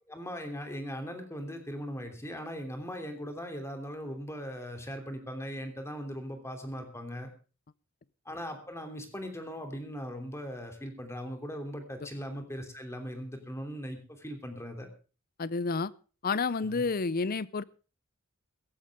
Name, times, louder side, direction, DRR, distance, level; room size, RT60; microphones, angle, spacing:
voice 1, 0.1-7.3 8.2-14.9 16.6-16.9, equal, 15° left, 5 dB, 3.0 m, -39 dB
voice 2, 15.4-15.9 16.2-17.6, left 4 dB, 45° left, 20 dB, 0.6 m, -30 dB
17.0 x 14.5 x 3.6 m, 0.35 s
head